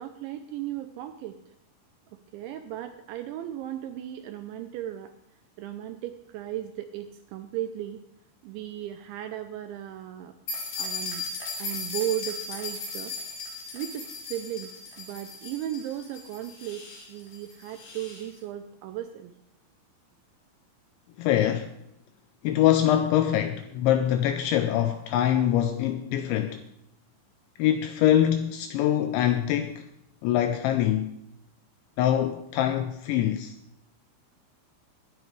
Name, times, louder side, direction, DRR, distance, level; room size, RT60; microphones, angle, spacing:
voice 1, 0.0-1.4 2.1-5.1 5.6-8.0 8.4-10.3 10.8-11.3 11.6-13.1 13.7-14.7 15.0-19.3, right 12 dB, 85° right, 2.7 m, -36 dB
sound 1, 10.5-18.3, left 3 dB, 50° left, 4.2 m, -37 dB
voice 2, 21.2-21.7 22.4-26.6 27.6-29.9 30.2-31.2 32.0-33.5, left 11 dB, 85° left, 2.7 m, -24 dB
21.5 x 10.0 x 3.3 m
omnidirectional pair, 5.9 m